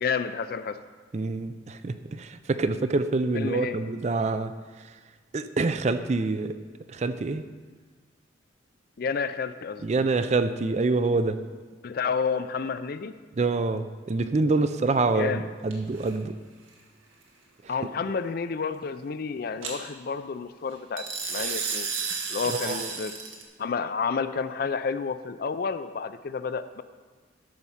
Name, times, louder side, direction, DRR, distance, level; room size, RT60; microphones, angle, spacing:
voice 1, 0.0-0.8 3.3-3.8 9.0-9.8 11.8-13.2 15.1-15.5 17.7-21.9 22.3-23.1 23.6-26.8, left 5 dB, 50° left, 12 dB, 0.4 m, -30 dB
voice 2, 1.1-4.9 5.3-6.5 6.9-7.5 9.8-11.4 13.4-16.4 17.6-17.7 21.4-21.5 22.4-22.9, right 3 dB, 35° right, 11 dB, 0.4 m, -26 dB
sound 1, 15.7-16.1 19.6-19.7 21.0-23.4, right 5 dB, 85° right, 1.8 m, -32 dB
12.5 x 5.3 x 5.7 m, 1.4 s
head